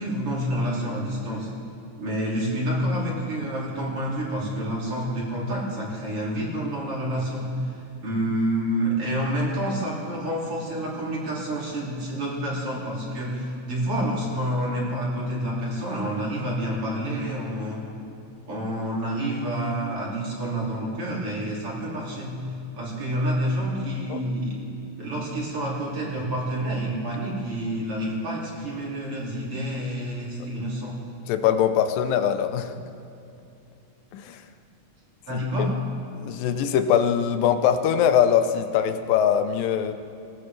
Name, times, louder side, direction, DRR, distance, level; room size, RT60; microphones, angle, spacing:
voice 1, 0.0-1.5 2.0-17.8 18.5-22.4 22.8-24.6 25.0-31.0 35.3-35.7, equal, 40° right, -5 dB, 3.6 m, -28 dB
voice 2, 31.3-32.7 34.1-34.4 35.3-35.4 36.1-39.9, left 8 dB, 85° left, 9 dB, 2.4 m, -22 dB
20.0 x 17.5 x 3.3 m, 2.7 s
omnidirectional pair, 3.9 m